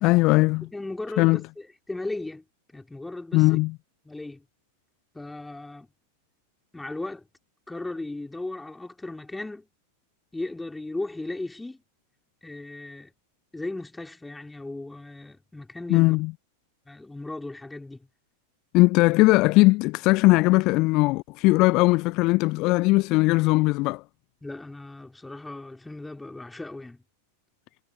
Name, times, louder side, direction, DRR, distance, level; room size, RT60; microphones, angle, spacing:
voice 1, 0.0-0.7 1.2-1.4 3.3-3.7 15.9-16.3 18.7-24.0, left 23 dB, 40° left, 0.5 m, -19 dB
voice 2, 0.7-2.5 2.7-3.5 4.0-4.5 5.1-5.9 6.7-7.3 7.7-9.7 10.3-11.8 12.4-13.1 13.5-16.2 16.9-18.1 24.4-27.0, left 2 dB, 5° left, 3.7 m, -36 dB
figure-of-eight pair, 90°, 0 cm